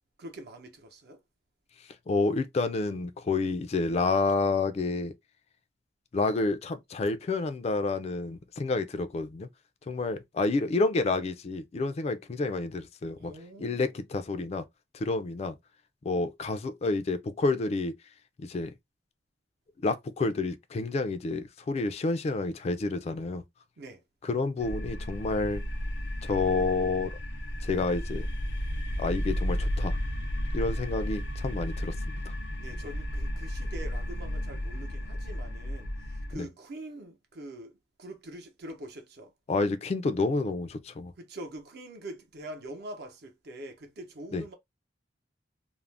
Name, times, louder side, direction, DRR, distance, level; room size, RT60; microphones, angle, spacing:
voice 1, 0.2-1.2 13.2-14.0 23.8-24.0 32.6-39.3 41.2-44.5, right 1 dB, 65° right, 0.7 m, -44 dB
voice 2, 2.1-5.1 6.1-9.5 9.9-13.3 13.6-14.6 14.9-15.6 16.0-17.9 18.4-18.7 19.8-23.4 24.2-25.6 26.2-27.1 27.6-28.3 29.0-30.0 30.5-32.3 36.3-36.5 39.5-41.1 44.3-44.4, left 3 dB, 35° left, 0.3 m, -29 dB
sound 1, 24.6-36.4, equal, 85° left, 0.6 m, -33 dB
2.5 x 2.0 x 3.1 m
head